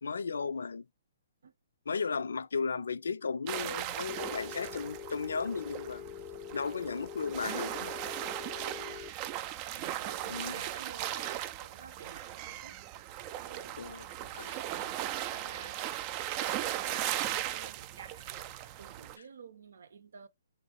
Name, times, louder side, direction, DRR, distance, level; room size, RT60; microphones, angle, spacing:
voice 1, 0.0-0.8 1.9-6.0 6.5-7.9 10.2-10.6 13.8-15.0, left 5 dB, 80° left, 0.4 m, -35 dB
sound 1, 3.5-19.2, right 13 dB, 30° right, 0.4 m, -38 dB
Telephone, 4.1-9.1, left 10 dB, 20° left, 0.6 m, -45 dB
voice 2, 8.7-9.2 9.7-12.8 13.4-13.8 15.3-15.9 16.2-20.3, right 6 dB, 70° right, 0.7 m, -51 dB
3.2 x 2.6 x 3.0 m
hypercardioid pair, 145°, 0 cm